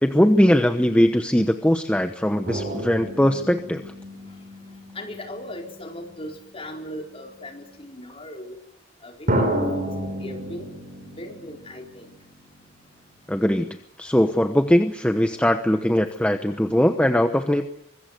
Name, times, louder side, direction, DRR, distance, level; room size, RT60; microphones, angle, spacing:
voice 1, 0.0-3.8 13.3-13.7 14.0-17.7, equal, 5° left, 6 dB, 1.0 m, -20 dB
sound 1, 2.5-6.4 7.3-7.4 9.3-12.6 12.9-13.0, right 1 dB, 45° right, 6.1 m, -30 dB
voice 2, 4.9-8.6 9.0-9.8 10.2-10.7 11.2-12.1, left 1 dB, 30° left, 1 dB, 4.6 m, -38 dB
24.5 x 22.0 x 8.0 m, 0.77 s
head